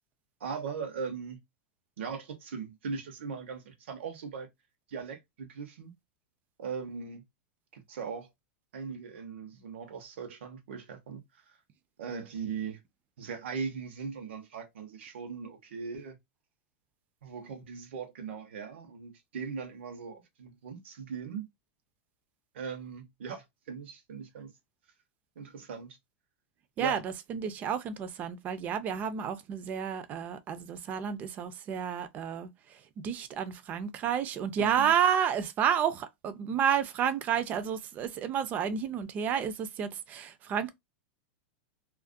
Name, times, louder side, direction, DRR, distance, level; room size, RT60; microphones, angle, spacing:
voice 1, 0.4-1.4 2.0-4.5 4.9-5.9 6.6-7.2 7.7-8.3 8.7-11.2 11.5-11.6 12.0-12.8 13.2-16.2 17.2-21.5 22.5-24.5 25.4-26.0 26.8-27.0 34.6-34.9, right 6 dB, 85° right, 0.8 m, -39 dB
voice 2, 26.8-32.5 33.0-40.7, right 8 dB, 25° right, 0.3 m, -30 dB
2.3 x 2.1 x 2.5 m
supercardioid pair, 145°, 6 cm